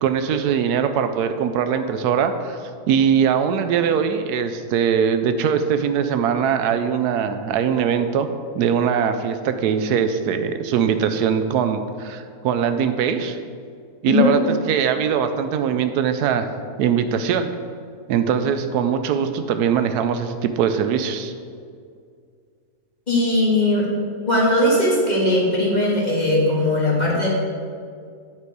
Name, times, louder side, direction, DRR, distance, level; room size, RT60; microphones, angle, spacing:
voice 1, 0.0-2.6 2.9-8.3 8.5-13.4 14.0-16.5 16.8-17.5 18.1-21.3, right 7 dB, 85° right, 9 dB, 1.1 m, -21 dB
voice 2, 23.1-23.9 24.3-27.3, left 1 dB, 30° left, -4 dB, 1.7 m, -19 dB
9.1 x 5.4 x 4.7 m, 2.2 s
omnidirectional pair, 1.6 m